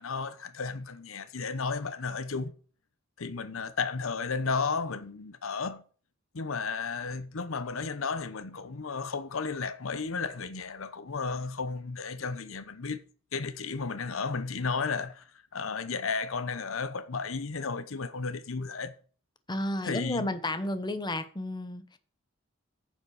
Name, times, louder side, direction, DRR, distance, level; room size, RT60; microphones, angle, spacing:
voice 1, 0.0-2.5 3.2-5.8 6.3-13.0 13.3-15.2 15.5-19.0 19.8-20.4, left 4 dB, 85° left, 0.9 m, -33 dB
voice 2, 19.5-22.0, left 1 dB, 20° left, 1.0 m, -32 dB
9.7 x 7.3 x 4.9 m
head